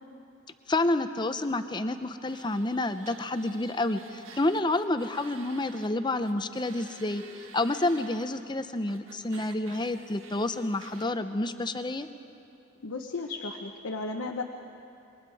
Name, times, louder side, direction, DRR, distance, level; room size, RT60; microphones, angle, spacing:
voice 1, 0.7-7.2 7.5-12.1, left 2 dB, 20° left, 10 dB, 0.7 m, -29 dB
sound 1, 2.2-5.9 6.2-8.2 8.9-11.1, right 5 dB, 85° right, 1.5 m, -50 dB
voice 2, 12.8-14.4, left 3 dB, 85° left, 2 dB, 1.0 m, -34 dB
27.0 x 22.5 x 4.8 m, 2.6 s
head